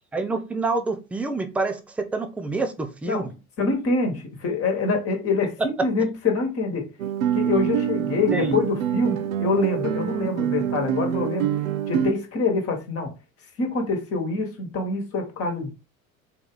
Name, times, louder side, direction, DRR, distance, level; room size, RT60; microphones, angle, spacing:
voice 1, 0.1-1.8 2.1-3.3 8.3-8.6, right 3 dB, 5° right, 0.4 m, -27 dB
voice 2, 3.6-5.5 5.8-6.9 7.3-11.5 11.9-13.1 13.6-15.7, left 3 dB, 35° left, 1.4 m, -25 dB
Guitar, 7.0-12.1, right 9 dB, 70° right, 0.6 m, -25 dB
4.0 x 2.8 x 3.6 m
figure-of-eight pair, 75°, 43 cm